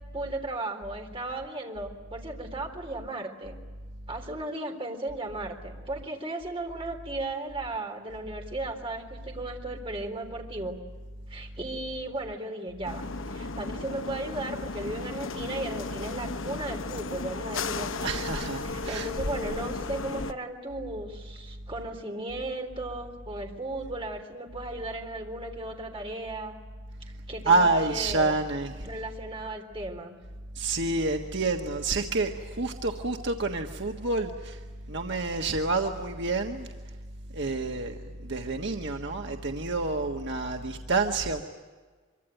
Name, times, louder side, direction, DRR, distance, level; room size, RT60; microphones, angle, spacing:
voice 1, 0.1-3.6 4.1-10.8 11.3-13.0 13.3-18.1 18.6-26.6 27.3-28.3 28.8-30.1, right 2 dB, 25° right, 3 dB, 3.7 m, -36 dB
sound 1, 12.8-20.3, left 3 dB, 80° left, 1.0 m, -35 dB
voice 2, 18.0-19.1 27.4-28.9 30.5-34.6 34.9-36.7 37.3-41.4, right 3 dB, 60° right, 3 dB, 1.5 m, -28 dB
25.0 x 24.5 x 9.2 m, 1.4 s
head